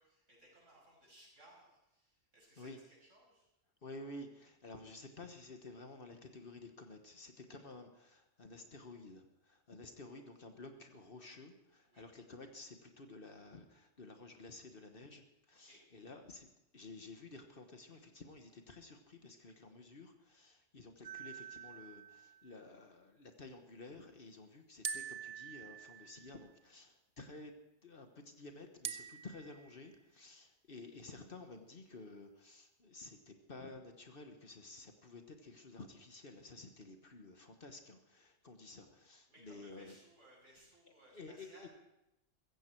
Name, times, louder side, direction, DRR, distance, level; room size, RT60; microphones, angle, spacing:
voice 1, 0.0-3.5 11.9-12.0 15.5-15.8 39.3-41.7, right 1 dB, 75° right, -3 dB, 6.3 m, -63 dB
voice 2, 3.8-16.5 16.7-27.5 27.8-39.9 41.1-41.7, left 2 dB, 45° left, 6 dB, 1.3 m, -52 dB
sound 1, 21.0-22.5 24.8-26.5 28.8-29.9, right 7 dB, 55° right, 1.0 m, -46 dB
15.5 x 15.0 x 4.5 m, 0.89 s
omnidirectional pair, 1.3 m